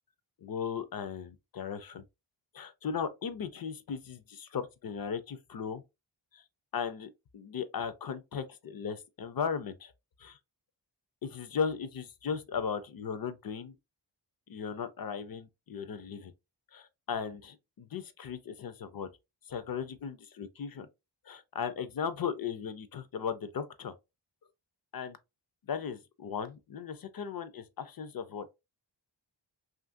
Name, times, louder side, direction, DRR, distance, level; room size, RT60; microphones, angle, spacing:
voice 1, 0.4-2.0 2.5-5.8 6.3-6.4 6.7-9.9 10.2-10.4 11.2-13.8 14.5-16.3 16.7-19.1 19.5-20.9 21.3-23.9 24.9-25.2 25.7-28.5, left 6 dB, 50° left, 0.5 m, -37 dB
2.9 x 2.5 x 2.4 m
wide cardioid pair, 90°, 46 cm